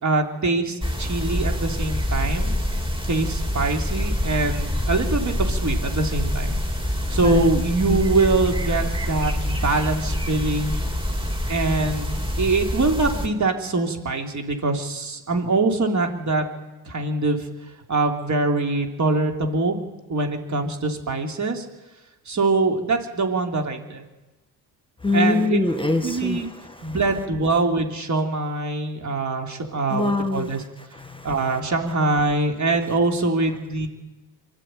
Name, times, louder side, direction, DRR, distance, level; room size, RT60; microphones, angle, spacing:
voice 1, 0.0-2.5 3.1-6.5 7.1-10.8 11.5-16.5 16.9-17.5 17.9-19.8 20.1-21.7 22.3-24.0 25.1-25.6 26.0-26.5 26.8-30.6 31.2-33.9, right 3 dB, 45° right, 3 dB, 3.5 m, -23 dB
sound 1, 0.8-13.3, left 1 dB, 15° right, 3.0 m, -26 dB
voice 2, 7.0-7.5 7.9-8.0 25.0-26.9 29.9-30.5 30.9-31.6, left 3 dB, 15° left, 7 dB, 1.6 m, -24 dB
23.5 x 12.5 x 9.3 m, 1.1 s
cardioid pair, 75°, 40 cm